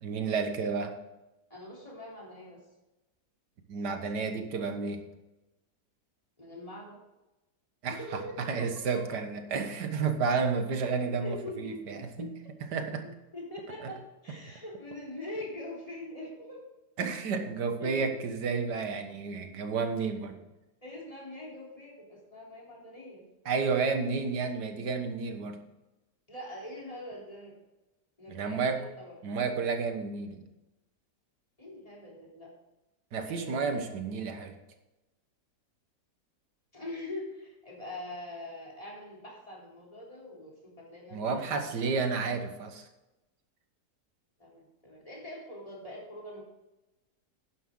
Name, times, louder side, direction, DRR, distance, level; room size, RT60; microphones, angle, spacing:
voice 1, 0.0-0.9 3.7-5.0 7.8-8.0 8.4-12.3 12.7-13.0 17.0-20.4 23.5-25.6 28.3-28.8 29.2-30.4 33.1-34.5 41.1-42.9, right 5 dB, 75° right, 6 dB, 1.8 m, -31 dB
voice 2, 1.5-2.6 6.4-7.0 7.9-8.4 10.7-12.3 13.3-16.6 17.8-18.1 19.0-19.1 20.8-23.2 26.3-27.5 28.2-29.2 31.6-32.5 33.3-34.0 36.7-41.5 44.4-46.4, left 1 dB, 20° left, -4 dB, 3.6 m, -43 dB
11.0 x 9.9 x 3.8 m, 1.0 s
omnidirectional pair, 1.8 m